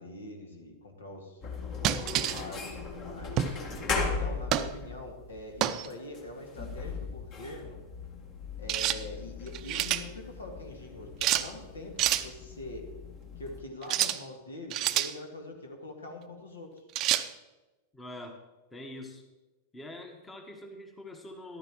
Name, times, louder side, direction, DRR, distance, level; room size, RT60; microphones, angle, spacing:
voice 1, 0.0-1.4 2.1-3.7 4.2-7.8 8.6-12.9 13.4-16.9, left 2 dB, 70° left, 3 dB, 2.0 m, -44 dB
sound 1, 1.4-13.6, left 4 dB, 35° left, 1.7 m, -38 dB
sound 2, 1.8-2.4 3.4-3.6 4.5-4.7 5.6-5.9 8.7-9.0 9.5-10.0 11.2-11.5 12.0-12.3 13.8-14.2 14.7-15.1 17.0-17.3, right 12 dB, 35° right, 0.6 m, -28 dB
voice 2, 17.9-18.4 18.7-19.2 19.7-21.6, left 1 dB, 15° left, 4 dB, 1.3 m, -44 dB
14.0 x 12.0 x 3.1 m, 1.1 s
figure-of-eight pair, 90°, 0 cm